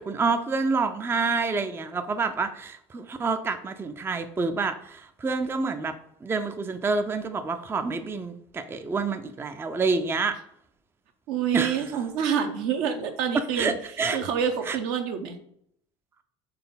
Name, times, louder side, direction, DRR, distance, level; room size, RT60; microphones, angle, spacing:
voice 1, 0.0-5.9 6.2-10.4 11.5-11.8 13.5-14.2 14.7-14.8, right 4 dB, 15° right, 9 dB, 0.4 m, -28 dB
voice 2, 11.3-13.7 14.1-15.4, right 7 dB, 65° right, 6 dB, 0.8 m, -27 dB
4.1 x 3.3 x 3.9 m, 0.71 s
hypercardioid pair, 70°, 16 cm